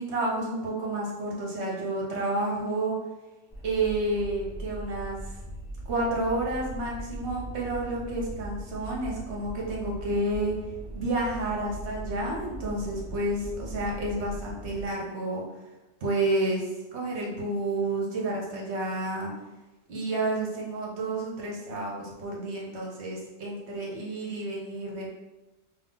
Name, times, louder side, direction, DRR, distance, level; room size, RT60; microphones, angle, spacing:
voice 1, 0.0-2.9 3.6-5.2 5.9-10.5 10.9-15.4 16.0-16.7 16.9-19.3 19.9-25.2, right 2 dB, 50° right, -3 dB, 0.9 m, -30 dB
sound 1, 3.5-14.9, right 1 dB, 20° left, 1.1 m, -40 dB
3.8 x 2.7 x 3.7 m, 1.1 s
omnidirectional pair, 1.8 m